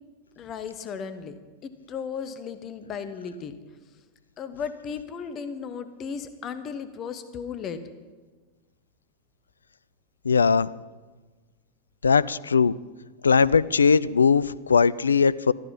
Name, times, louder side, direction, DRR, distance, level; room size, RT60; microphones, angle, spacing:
voice 1, 0.4-1.3 1.6-3.5 4.4-7.8, left 6 dB, 30° left, 11 dB, 1.1 m, -35 dB
voice 2, 10.3-10.7 12.0-12.8 13.2-15.5, left 5 dB, 75° left, 20 dB, 0.4 m, -20 dB
14.0 x 14.0 x 5.9 m, 1.3 s
figure-of-eight pair, 90°, 0 cm